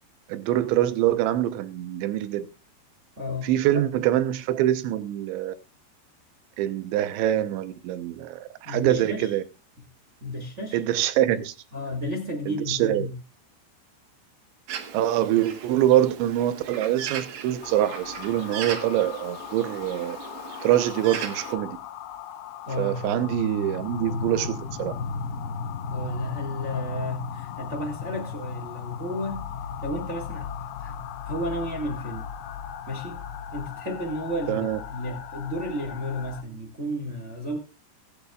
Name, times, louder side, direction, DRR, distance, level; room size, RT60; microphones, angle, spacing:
voice 1, 0.3-2.5 3.4-5.5 6.6-9.4 10.7-11.5 12.5-13.1 14.9-20.2 20.6-21.8 22.8-24.9 34.5-34.8, right 12 dB, 90° right, 3.3 m, -24 dB
voice 2, 3.2-3.5 8.6-9.3 9.8-9.9 10.2-10.8 11.7-13.1 22.6-23.0 25.9-29.5 29.8-31.0 31.2-32.3 32.9-33.2 33.5-37.6, left 1 dB, 40° right, 0.9 m, -32 dB
Bird, 14.7-21.6, right 7 dB, 60° right, 1.9 m, -38 dB
sound 1, 17.6-36.4, left 6 dB, 70° left, 2.5 m, -36 dB
23.0 x 8.7 x 2.4 m
omnidirectional pair, 5.1 m